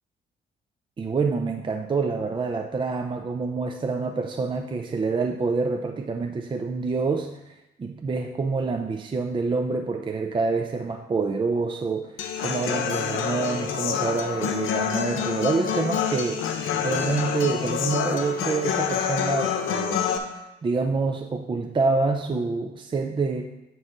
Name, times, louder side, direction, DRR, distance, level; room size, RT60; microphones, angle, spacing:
voice 1, 1.0-12.2 12.4-20.1 20.3-23.4, right 4 dB, 25° right, 4 dB, 0.5 m, -27 dB
Human voice / Acoustic guitar, 12.2-20.2, left 7 dB, 85° left, 0.7 m, -27 dB
9.3 x 3.1 x 5.7 m, 0.94 s
cardioid pair, 90°, 20 cm